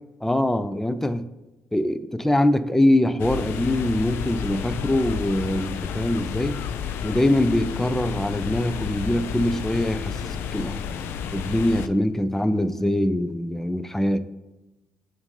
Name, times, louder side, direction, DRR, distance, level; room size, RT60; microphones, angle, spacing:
voice 1, 0.2-1.3 1.7-6.6 7.0-10.8 11.3-14.2, left 1 dB, 10° left, 11 dB, 0.5 m, -23 dB
sound 1, 3.2-11.9, left 8 dB, 70° left, 0.4 m, -31 dB
7.0 x 2.7 x 5.3 m, 1.1 s
hypercardioid pair, 45°, 4 cm